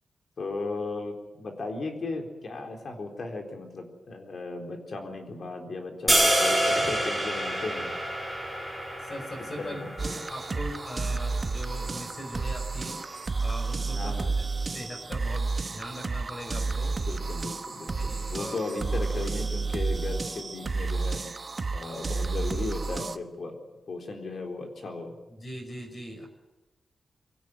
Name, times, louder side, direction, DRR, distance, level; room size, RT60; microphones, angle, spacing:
voice 1, 0.4-7.9 9.6-10.1 14.0-14.4 17.0-21.2 21.7-23.5 23.9-25.2, left 3 dB, 50° left, 4 dB, 4.0 m, -36 dB
sound 1, 6.1-12.2, right 1 dB, 10° left, 6.1 m, -28 dB
voice 2, 9.0-13.0 13.4-14.5 14.7-16.9 17.9-18.6 25.4-26.3, equal, 30° left, 3 dB, 5.7 m, -40 dB
sound 2, 10.0-23.2, right 3 dB, 35° right, 1.0 m, -31 dB
24.0 x 17.5 x 9.4 m, 1.1 s
wide cardioid pair, 155°, 0 cm